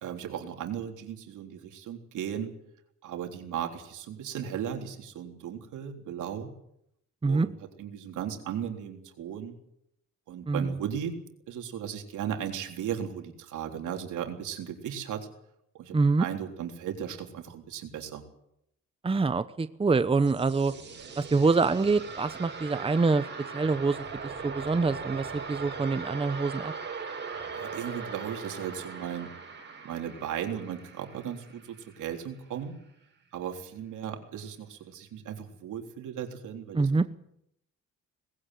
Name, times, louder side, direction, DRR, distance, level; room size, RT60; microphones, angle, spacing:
voice 1, 0.0-2.5 3.0-6.5 7.3-9.6 10.3-11.1 11.5-15.3 15.7-18.3 27.6-29.3 29.8-32.8 33.3-37.1, right 9 dB, 80° right, 4 dB, 3.7 m, -36 dB
voice 2, 15.9-16.2 19.0-20.7 21.2-23.3 23.5-24.0 24.4-26.7 36.7-37.0, right 4 dB, 20° right, 12 dB, 0.9 m, -25 dB
sound 1, 19.9-32.5, right 5 dB, 35° right, 7.2 m, -40 dB
19.5 x 16.5 x 9.2 m, 0.76 s
cardioid pair, 90°, 30 cm